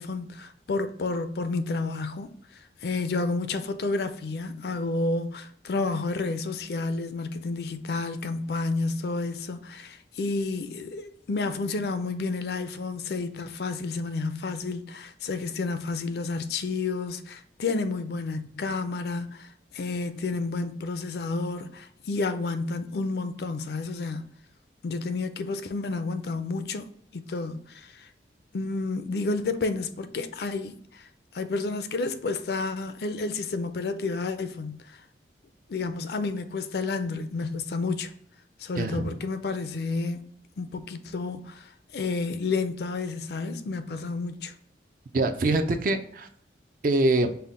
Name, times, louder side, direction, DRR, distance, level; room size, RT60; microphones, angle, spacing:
voice 1, 0.0-24.3 24.8-26.8 27.1-28.1 28.5-31.1 31.3-35.0 35.7-38.1 38.6-40.3 40.6-44.5, left 3 dB, 60° left, 0.4 m, -30 dB
voice 2, 38.8-39.2 45.1-46.3 46.8-47.3, right 2 dB, 50° right, 0.4 m, -24 dB
5.6 x 2.1 x 3.6 m
head